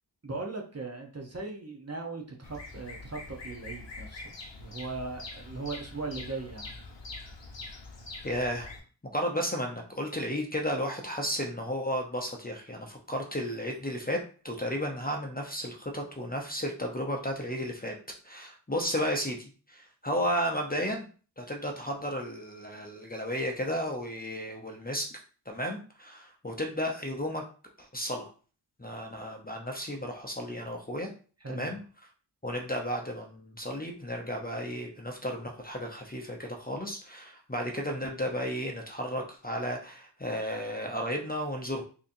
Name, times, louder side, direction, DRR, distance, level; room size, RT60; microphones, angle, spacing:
voice 1, 0.2-4.2 4.6-6.8 31.4-31.7, right 3 dB, 35° right, 1 dB, 0.8 m, -38 dB
Bird vocalization bird call bird song, 2.4-8.8, left 3 dB, 85° left, 0.8 m, -44 dB
voice 2, 8.2-8.7 9.0-14.2 14.4-17.9 18.2-21.0 21.4-25.1 25.5-27.4 27.8-28.3 28.8-31.1 31.5-31.8 32.4-41.8, equal, 20° left, 1 dB, 0.7 m, -33 dB
3.9 x 2.8 x 2.7 m, 0.38 s
wide cardioid pair, 40°, 43 cm